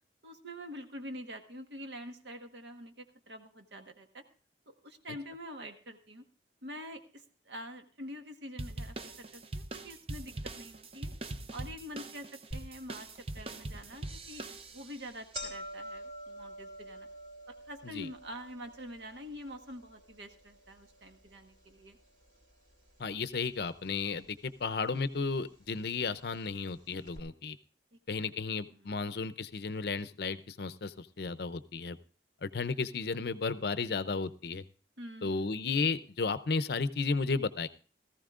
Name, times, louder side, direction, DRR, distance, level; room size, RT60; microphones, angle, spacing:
voice 1, 0.2-4.2 4.7-6.3 6.6-11.1 11.5-14.5 14.7-17.1 17.5-22.0 28.2-28.3 28.6-29.1 35.0-35.6, equal, 70° right, 5 dB, 1.4 m, -46 dB
sound 1, 8.6-15.1, right 2 dB, 30° right, 0.6 m, -42 dB
sound 2, 12.5-12.6 13.1-13.2 14.1-14.3 14.6-14.7 15.0-23.2 23.4-24.2 25.0-25.1 26.0-26.1 26.4-26.5 27.1-27.2, right 1 dB, 50° right, 3.5 m, -48 dB
voice 2, 23.0-27.6 28.1-32.0 32.4-34.6 35.2-37.7, left 4 dB, 55° left, 13 dB, 0.6 m, -33 dB
18.0 x 14.5 x 2.5 m, 0.38 s
head